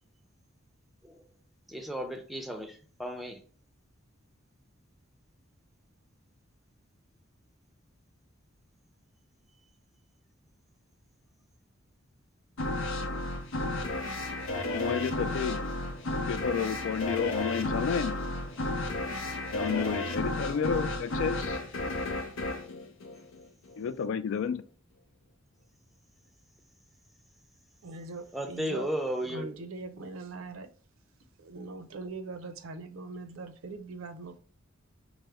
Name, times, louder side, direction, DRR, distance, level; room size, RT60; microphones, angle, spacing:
voice 1, 1.7-3.4 19.7-20.0 28.3-29.6, equal, ahead, 0.5 m, -35 dB
sound 1, 12.6-23.8, left 2 dB, 85° left, 0.7 m, -33 dB
voice 2, 14.7-15.6 16.3-18.2 19.5-21.6 23.8-24.6, left 6 dB, 65° left, 0.3 m, -31 dB
voice 3, 27.8-30.7 31.4-34.4, right 3 dB, 75° right, 0.5 m, -41 dB
4.7 x 2.1 x 3.3 m
head